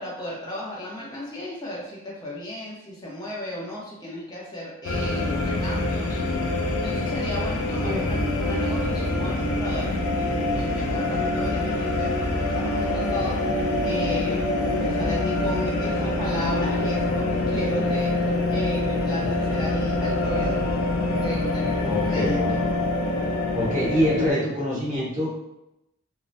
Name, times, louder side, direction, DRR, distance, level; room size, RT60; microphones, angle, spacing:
voice 1, 0.0-6.2 6.8-20.6 21.0-22.6, left 1 dB, 20° left, -5 dB, 0.7 m, -35 dB
sound 1, 4.8-24.3, left 2 dB, 80° left, 0.4 m, -25 dB
voice 2, 21.8-22.5 23.5-25.5, equal, 35° right, -7 dB, 1.0 m, -25 dB
3.2 x 2.1 x 2.5 m, 0.88 s
head